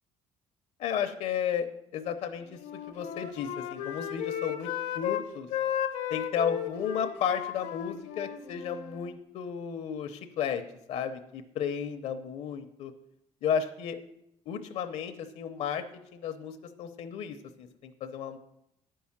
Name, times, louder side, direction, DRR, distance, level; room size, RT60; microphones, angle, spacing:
voice 1, 0.8-1.7 1.9-2.6 2.9-5.5 6.1-10.6 10.9-12.9 13.4-14.0 14.5-15.8 16.1-18.4, left 8 dB, 60° left, 8 dB, 0.7 m, -33 dB
Wind instrument woodwind instrument, 2.5-5.2 5.5-9.1, left 10 dB, 85° left, 1.0 m, -35 dB
9.9 x 5.5 x 7.2 m, 0.79 s
cardioid pair, 180°, 12 cm